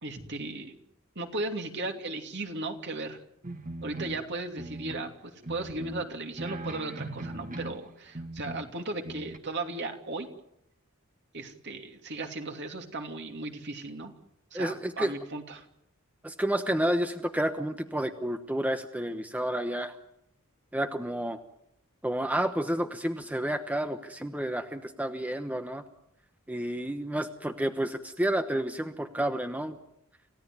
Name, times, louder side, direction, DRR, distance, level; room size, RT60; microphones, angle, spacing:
voice 1, 0.0-0.8 1.1-3.2 3.8-10.3 11.3-14.1 14.5-15.6, right 2 dB, 55° right, 4 dB, 2.9 m, -36 dB
sound 1, 3.4-5.1 5.4-7.9 8.1-8.8 9.0-9.4, right 2 dB, 40° right, 1.7 m, -39 dB
voice 2, 14.5-15.1 16.2-19.9 20.7-21.4 22.0-25.8 26.5-29.8, right 1 dB, 5° right, 7 dB, 1.0 m, -30 dB
28.5 x 16.5 x 9.4 m, 0.80 s
head